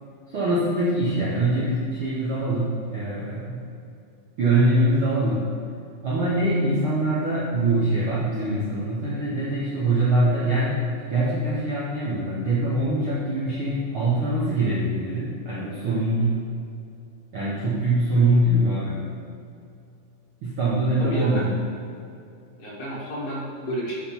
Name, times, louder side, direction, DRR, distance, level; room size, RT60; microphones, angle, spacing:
voice 1, 0.3-3.6 4.4-5.6 6.0-16.4 17.3-19.0 20.4-21.6, right 1 dB, 75° right, -7 dB, 1.2 m, -23 dB
voice 2, 21.0-21.4 22.6-24.0, right 1 dB, 50° left, -5 dB, 2.4 m, -31 dB
11.0 x 5.8 x 4.6 m, 2.5 s
omnidirectional pair, 4.4 m